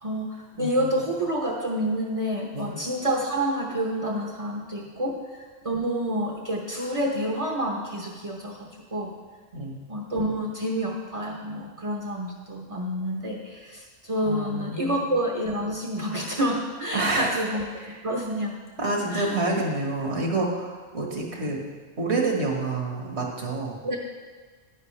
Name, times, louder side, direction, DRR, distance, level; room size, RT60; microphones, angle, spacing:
voice 1, 0.0-9.1 9.9-17.6 18.0-18.6 19.1-19.4 23.8-24.0, equal, 30° right, -1 dB, 0.9 m, -28 dB
voice 2, 9.5-9.8 14.2-15.0 16.9-17.3 18.8-21.6 22.0-23.8, right 2 dB, 60° right, -1 dB, 1.8 m, -28 dB
11.0 x 9.4 x 3.3 m, 1.4 s
omnidirectional pair, 1.3 m